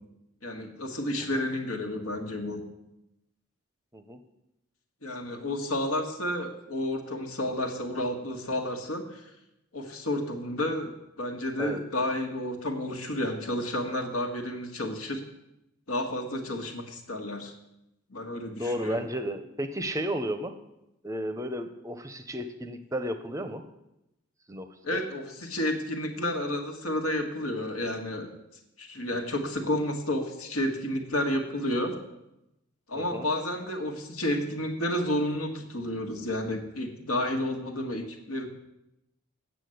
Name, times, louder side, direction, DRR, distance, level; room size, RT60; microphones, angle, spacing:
voice 1, 0.4-2.6 5.0-9.2 9.7-10.9 11.2-15.2 15.9-17.5 18.1-19.1 24.8-28.3 28.8-31.9 32.9-38.5, left 1 dB, 85° left, 3 dB, 1.7 m, -31 dB
voice 2, 18.6-20.5 21.0-23.6 24.5-25.0 32.9-33.3, equal, 15° right, 9 dB, 0.6 m, -33 dB
8.4 x 7.1 x 7.8 m, 0.88 s
head